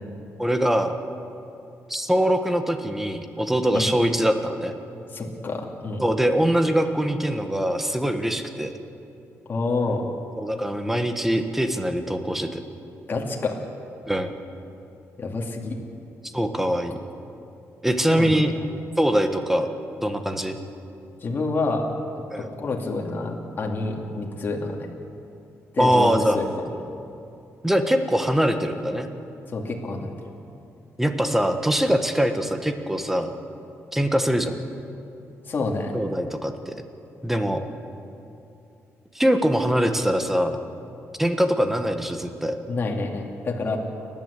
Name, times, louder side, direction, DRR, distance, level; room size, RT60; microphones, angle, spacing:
voice 1, 0.4-0.9 1.9-4.8 6.0-8.7 10.4-12.6 14.1-14.3 16.3-17.0 17.8-18.5 19.0-19.7 20.0-20.6 22.3-22.5 25.8-26.4 27.6-29.1 31.0-33.3 33.9-34.6 35.9-36.8 37.2-37.6 39.1-40.6 41.2-42.6, equal, 5° right, 7 dB, 1.4 m, -23 dB
voice 2, 5.1-6.0 9.5-10.1 13.1-13.6 15.2-15.8 18.1-18.4 21.2-21.9 22.5-24.9 25.7-26.7 29.5-30.1 35.4-36.0 42.7-43.8, left 3 dB, 40° left, 0 dB, 2.5 m, -28 dB
29.5 x 11.0 x 8.3 m, 2.7 s
cardioid pair, 125°, 5 cm